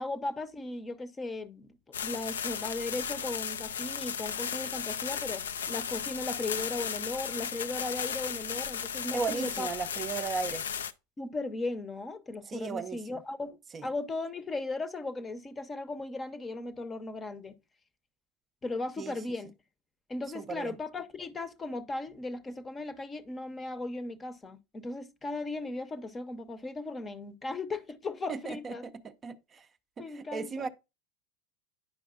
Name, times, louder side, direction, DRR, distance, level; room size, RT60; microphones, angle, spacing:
voice 1, 0.0-9.7 11.2-17.6 18.6-19.5 20.1-28.9 30.0-30.7, left 2 dB, 20° left, 0.7 m, -37 dB
sound 1, 1.9-10.9, left 7 dB, 90° left, 0.3 m, -35 dB
voice 2, 9.1-10.6 12.5-13.2 13.7-13.9 19.0-19.1 20.3-20.8 28.3-28.9 29.2-29.7 30.0-30.7, right 5 dB, 30° right, 0.5 m, -36 dB
9.3 x 5.2 x 2.3 m
hypercardioid pair, 95°, 0 cm